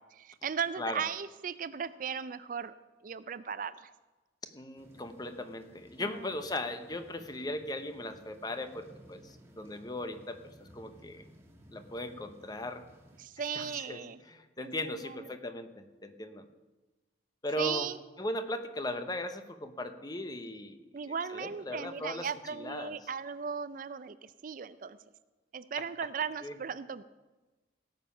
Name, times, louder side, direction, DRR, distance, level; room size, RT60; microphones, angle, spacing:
voice 1, 0.0-2.7 3.0-3.9 6.0-6.3 13.2-14.2 14.6-15.3 17.6-18.0 20.9-25.0 25.5-27.0, right 6 dB, 45° right, 14 dB, 0.4 m, -37 dB
voice 2, 4.5-11.2 11.7-12.8 13.5-14.0 14.3-16.4 17.4-17.9 18.2-21.0 21.3-22.3 22.6-23.0 26.4-26.5, left 1 dB, 20° left, 9 dB, 0.8 m, -38 dB
sound 1, 4.8-13.2, equal, 15° right, 1.5 m, -57 dB
17.5 x 7.3 x 5.7 m, 1.2 s
head